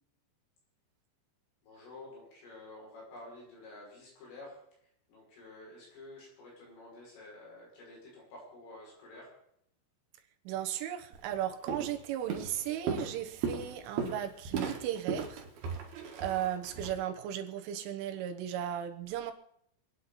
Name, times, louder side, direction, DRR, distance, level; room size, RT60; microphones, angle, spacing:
voice 1, 1.6-4.6 5.1-9.3, left 2 dB, 85° left, -3 dB, 8.8 m, -50 dB
voice 2, 10.5-15.5 16.2-19.3, right 11 dB, 80° right, 6 dB, 3.6 m, -36 dB
Walk footsteps, 11.1-11.3 11.7-12.0 12.3-16.9, right 5 dB, 60° right, 3.2 m, -36 dB
26.5 x 9.6 x 4.1 m, 0.72 s
omnidirectional pair, 5.6 m